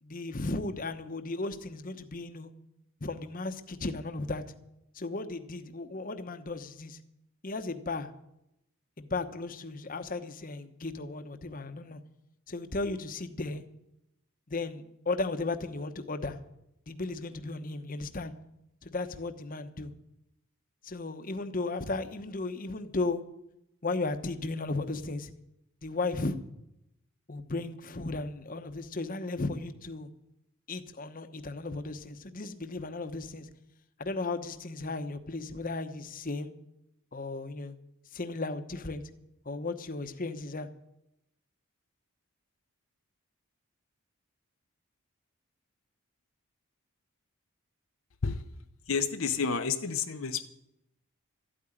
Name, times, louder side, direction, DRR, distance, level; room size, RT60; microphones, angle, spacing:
voice 1, 0.0-2.5 3.0-4.4 4.9-7.0 7.4-8.1 9.0-12.0 12.5-13.6 14.5-16.4 16.9-18.3 18.8-19.9 20.8-23.2 23.8-25.3 25.8-26.4 27.3-30.1 30.7-33.5 34.0-36.5 37.1-37.8 38.1-39.0 39.4-40.7, left 3 dB, 40° left, 9 dB, 0.9 m, -35 dB
voice 2, 48.9-50.5, left 5 dB, 65° left, 7 dB, 0.7 m, -30 dB
13.5 x 8.8 x 9.8 m, 0.83 s
head